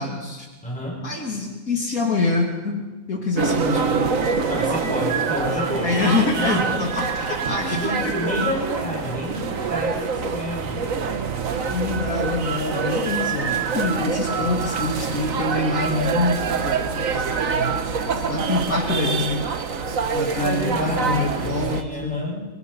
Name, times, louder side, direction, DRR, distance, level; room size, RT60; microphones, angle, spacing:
voice 1, 0.0-0.5 1.0-4.2 5.8-8.4 11.7-17.8 18.3-19.5 20.1-22.3, left 3 dB, 65° left, -1 dB, 3.3 m, -26 dB
voice 2, 0.6-1.0 4.5-6.8 7.5-10.9 12.7-12.9 20.3-22.5, left 1 dB, 5° left, -2 dB, 5.8 m, -30 dB
sound 1, 3.4-21.8, right 5 dB, 60° right, 1.6 m, -25 dB
26.0 x 20.5 x 5.6 m, 1.2 s
omnidirectional pair, 1.6 m